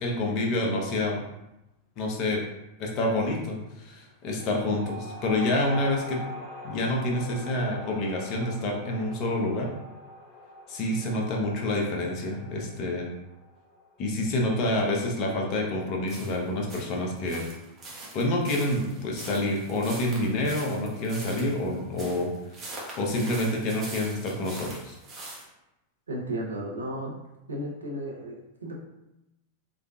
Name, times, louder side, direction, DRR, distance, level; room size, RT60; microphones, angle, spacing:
voice 1, 0.0-1.2 2.0-2.4 2.8-6.2 6.6-9.7 10.7-13.1 14.0-17.4 18.1-22.3 22.6-22.7 23.0-25.0, left 1 dB, 45° left, 0 dB, 0.9 m, -28 dB
sound 1, 4.4-15.3, left 1 dB, 25° left, 1.4 m, -43 dB
sound 2, 16.1-25.4, right 2 dB, 35° right, 1.2 m, -43 dB
voice 2, 26.1-27.2 27.5-28.7, right 1 dB, 90° right, 0 dB, 0.7 m, -34 dB
3.7 x 3.3 x 2.4 m, 0.93 s
hypercardioid pair, 95°, 0 cm